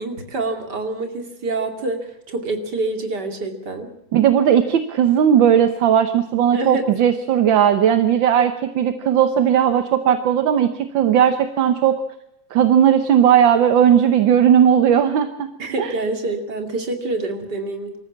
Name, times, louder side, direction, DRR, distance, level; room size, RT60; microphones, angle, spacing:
voice 1, 0.0-3.9 6.5-6.9 15.6-18.0, right 2 dB, 60° right, 5 dB, 3.2 m, -26 dB
voice 2, 4.1-12.0 12.5-15.5 15.8-16.0, right 9 dB, 80° right, 9 dB, 1.8 m, -16 dB
25.5 x 14.5 x 7.4 m, 0.82 s
omnidirectional pair, 2.1 m